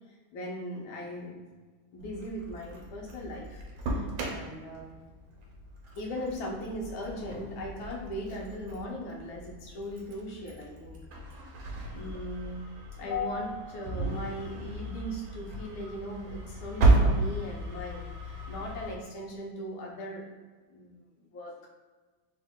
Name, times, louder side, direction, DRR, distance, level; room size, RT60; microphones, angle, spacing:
voice 1, 0.1-1.3 1.9-5.0 5.9-11.0 11.9-12.7 13.0-20.3 20.7-20.9 21.2-21.6, left 1 dB, 75° left, -1 dB, 1.5 m, -38 dB
Engine starting, 2.0-19.0, right 2 dB, 80° right, 1.5 m, -33 dB
3.6 x 2.7 x 3.6 m, 1.4 s
omnidirectional pair, 2.3 m